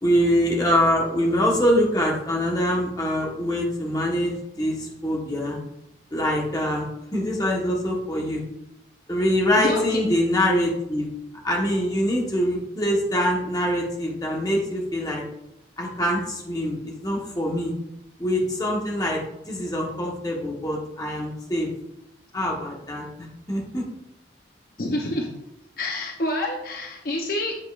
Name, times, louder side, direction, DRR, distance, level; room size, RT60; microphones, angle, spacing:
voice 1, 0.0-5.6 6.1-8.4 9.1-11.1 11.4-15.2 15.8-16.8 17.0-17.7 18.2-19.2 19.5-21.7 22.3-23.1 23.5-23.8, equal, 20° left, -2 dB, 1.3 m, -24 dB
voice 2, 9.6-10.0 24.8-25.3 25.8-27.5, left 1 dB, 55° left, 1 dB, 0.8 m, -28 dB
8.6 x 7.3 x 2.5 m, 0.87 s
head